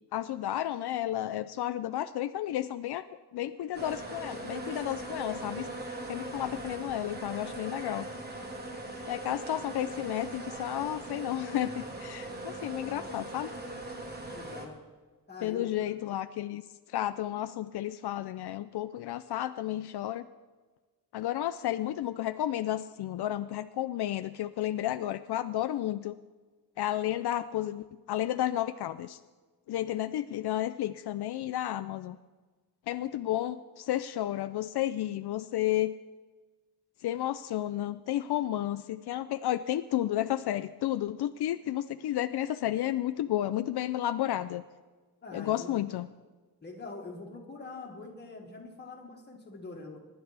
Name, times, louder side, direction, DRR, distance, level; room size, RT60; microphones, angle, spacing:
voice 1, 0.1-3.0 3.3-5.7 6.1-8.1 9.1-13.5 15.4-16.6 16.9-20.2 21.1-26.1 26.8-29.2 29.7-32.2 32.9-35.9 37.0-44.6 45.3-46.1, left 13 dB, 75° left, 11 dB, 0.5 m, -32 dB
sound 1, 3.7-14.7, right 2 dB, 25° right, 1.5 m, -40 dB
voice 2, 14.3-14.8 15.3-15.7 45.2-45.8 46.6-50.0, left 3 dB, 25° left, 0 dB, 1.9 m, -44 dB
24.0 x 11.0 x 3.4 m, 1.3 s
wide cardioid pair, 175°, 39 cm